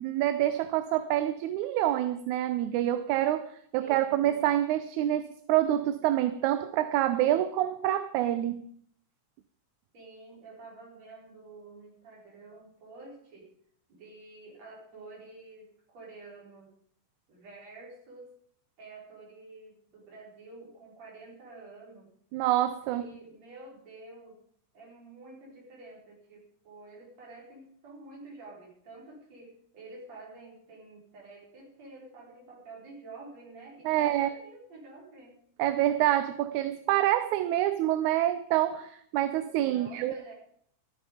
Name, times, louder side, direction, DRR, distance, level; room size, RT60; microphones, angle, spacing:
voice 1, 0.0-8.7 22.3-23.0 33.9-34.3 35.6-40.1, right 13 dB, 85° right, 12 dB, 2.1 m, -27 dB
voice 2, 3.8-4.5 9.9-13.5 13.9-16.7 17.3-18.3 18.8-22.1 22.9-24.4 24.7-35.4 39.5-40.3, right 3 dB, 60° right, -2 dB, 5.6 m, -49 dB
14.5 x 13.0 x 5.0 m, 0.64 s
omnidirectional pair, 3.3 m